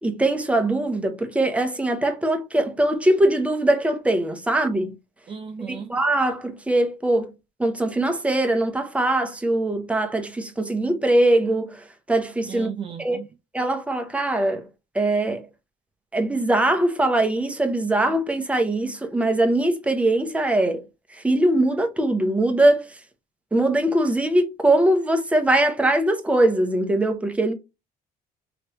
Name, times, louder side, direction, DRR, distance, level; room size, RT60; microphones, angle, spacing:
voice 1, 0.0-4.9 5.7-7.3 7.6-12.7 13.0-13.2 13.5-14.7 14.9-15.4 16.1-20.8 21.2-22.9 23.5-27.5, right 1 dB, 5° right, 0.7 m, -21 dB
voice 2, 5.3-6.0 12.5-13.3, right 7 dB, 30° right, 0.4 m, -35 dB
3.3 x 2.9 x 3.0 m
cardioid pair, 110°, 17 cm